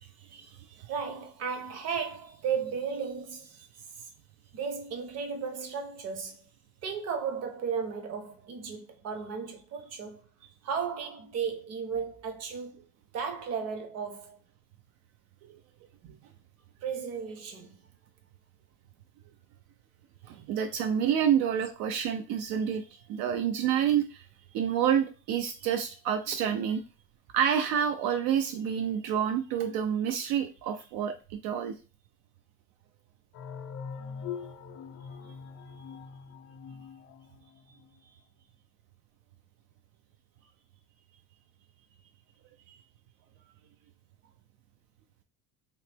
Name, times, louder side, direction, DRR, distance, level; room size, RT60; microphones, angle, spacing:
voice 1, 0.0-3.7 4.5-6.4 6.8-10.2 10.6-12.8 13.1-14.4 16.0-16.1 16.8-17.8 20.4-20.5, right 6 dB, 50° right, 0.8 m, -35 dB
voice 2, 20.2-24.2 24.5-26.8 27.3-31.2 31.4-31.7 42.7-42.8, right 8 dB, 80° right, 0.5 m, -28 dB
sound 1, 33.3-37.9, left 6 dB, 45° left, 0.4 m, -42 dB
3.1 x 2.8 x 3.3 m
cardioid pair, 120°, 34 cm